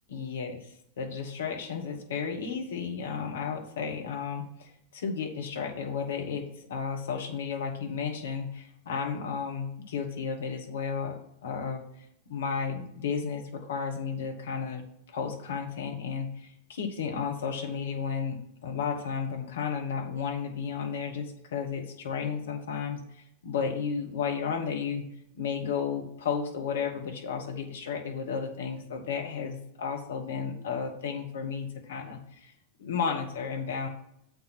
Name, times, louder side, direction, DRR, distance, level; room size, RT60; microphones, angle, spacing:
voice 1, 0.1-0.6 1.0-25.1 25.3-32.5 32.8-33.9, left 6 dB, 60° left, 3 dB, 1.4 m, -33 dB
7.3 x 4.7 x 6.0 m, 0.75 s
figure-of-eight pair, 90°, 0 cm